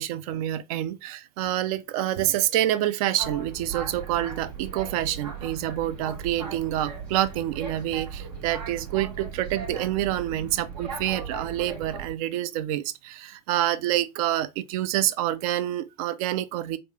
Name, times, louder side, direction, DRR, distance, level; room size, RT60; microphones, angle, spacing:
voice 1, 0.0-16.8, right 13 dB, 60° right, 0.4 m, -27 dB
Boat Water vehicle, 3.2-12.1, right 5 dB, 80° right, 1.2 m, -37 dB
3.2 x 2.5 x 2.9 m
hypercardioid pair, 90°, 21 cm